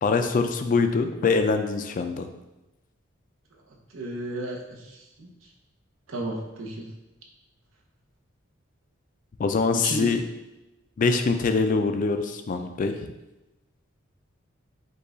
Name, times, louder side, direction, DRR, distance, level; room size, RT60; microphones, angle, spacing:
voice 1, 0.0-2.3 9.4-10.2 11.0-13.1, left 4 dB, 40° left, 7 dB, 0.3 m, -24 dB
voice 2, 3.7-5.3 6.1-6.9 9.7-10.1, right 1 dB, 75° right, 0 dB, 0.8 m, -33 dB
5.3 x 2.3 x 3.8 m, 1.0 s
head